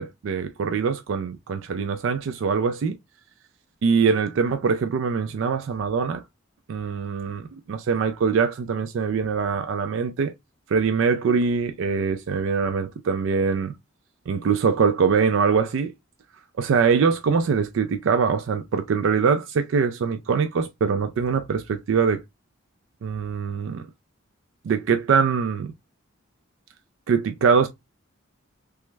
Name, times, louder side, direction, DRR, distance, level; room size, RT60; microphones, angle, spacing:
voice 1, 0.0-2.9 3.8-6.2 6.7-10.3 10.7-13.7 14.3-15.9 16.6-22.2 23.0-23.9 24.6-25.7 27.1-27.7, right 5 dB, 65° right, 0.3 m, -23 dB
3.3 x 2.0 x 3.2 m
head